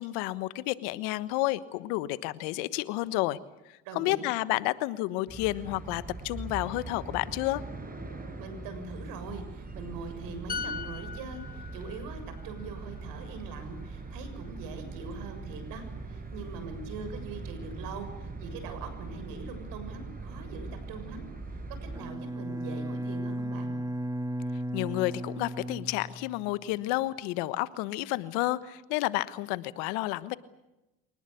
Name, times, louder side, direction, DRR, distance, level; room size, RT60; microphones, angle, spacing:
voice 1, 0.0-3.4 3.7-7.6 24.7-30.4, left 18 dB, 85° left, 15 dB, 1.3 m, -31 dB
voice 2, 3.8-4.3 8.4-21.2 21.8-23.8, right 3 dB, 75° right, 9 dB, 7.1 m, -42 dB
sound 1, 5.3-22.0, right 3 dB, 25° right, 6.9 m, -41 dB
sound 2, 10.5-14.1 14.4-14.7, left 5 dB, 25° left, 1.1 m, -41 dB
Bowed string instrument, 21.9-26.7, equal, 10° right, 1.8 m, -35 dB
25.0 x 19.5 x 8.4 m, 0.95 s
supercardioid pair, 70°, 34 cm